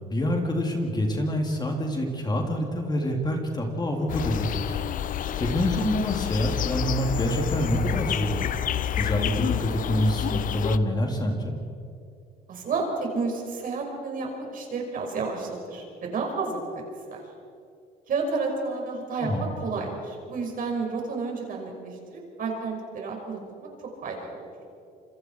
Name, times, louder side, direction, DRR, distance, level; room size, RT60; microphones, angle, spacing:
voice 1, 0.1-4.8 5.4-8.5 9.0-11.5 19.2-19.5, equal, 25° left, 2 dB, 3.4 m, -26 dB
sound 1, 4.1-10.8, left 10 dB, 50° left, 0.7 m, -29 dB
voice 2, 12.5-16.6 17.1-17.2 18.1-19.3 19.6-23.7 24.0-24.5, right 4 dB, 55° right, 1 dB, 5.8 m, -31 dB
27.5 x 25.0 x 4.8 m, 2.5 s
cardioid pair, 110°, 17 cm